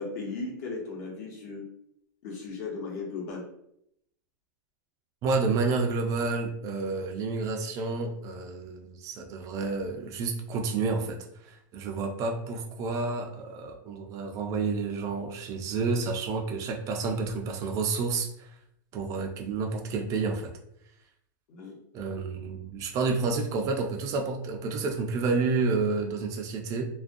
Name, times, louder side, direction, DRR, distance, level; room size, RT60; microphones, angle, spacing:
voice 1, 0.0-1.6 2.2-3.4 21.5-21.8, left 3 dB, 55° left, -1 dB, 0.8 m, -36 dB
voice 2, 5.2-18.5 18.9-20.5 21.9-26.8, right 4 dB, 30° right, 2 dB, 0.3 m, -30 dB
2.4 x 2.2 x 2.5 m, 0.74 s
supercardioid pair, 150°, 11 cm